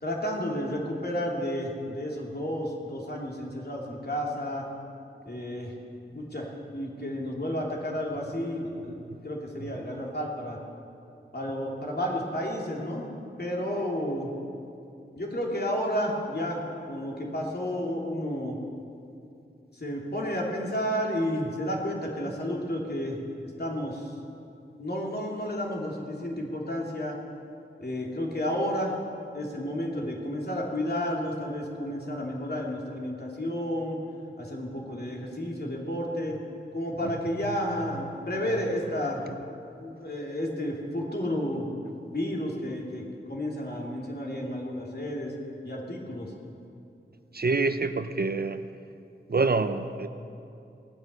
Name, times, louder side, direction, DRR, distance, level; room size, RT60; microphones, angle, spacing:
voice 1, 0.0-4.7 5.2-5.7 6.1-9.0 9.2-10.6 11.3-13.1 13.4-14.3 15.1-16.6 16.9-18.6 19.7-23.2 23.6-24.1 24.8-27.2 27.8-28.9 29.3-34.0 34.4-36.4 36.7-39.2 39.8-45.3 45.6-46.3, equal, 50° left, -2 dB, 2.8 m, -31 dB
voice 2, 47.3-48.6 49.3-50.1, right 3 dB, 50° right, 9 dB, 0.7 m, -26 dB
18.0 x 9.6 x 8.0 m, 2.6 s
wide cardioid pair, 75°, 20 cm